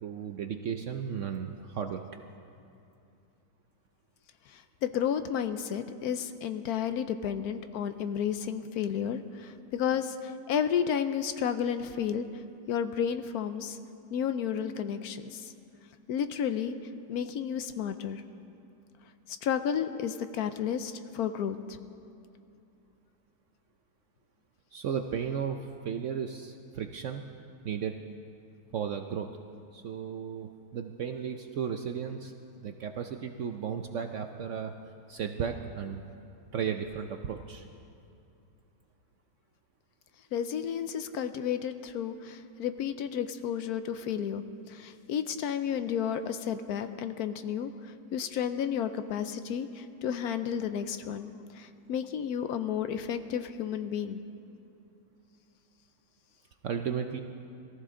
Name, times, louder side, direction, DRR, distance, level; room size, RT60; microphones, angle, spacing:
voice 1, 0.0-2.0 24.7-27.2 27.6-27.9 28.7-29.3 29.7-32.3 32.6-34.7 35.1-36.0 36.5-37.7 56.6-57.2, right 7 dB, 70° right, 5 dB, 0.7 m, -34 dB
voice 2, 4.5-12.2 12.7-13.8 14.1-15.5 16.1-16.8 17.1-18.2 19.3-21.8 40.3-51.3 51.5-54.2, left 8 dB, 70° left, 10 dB, 1.0 m, -32 dB
22.0 x 14.0 x 3.8 m, 2.6 s
omnidirectional pair, 1.9 m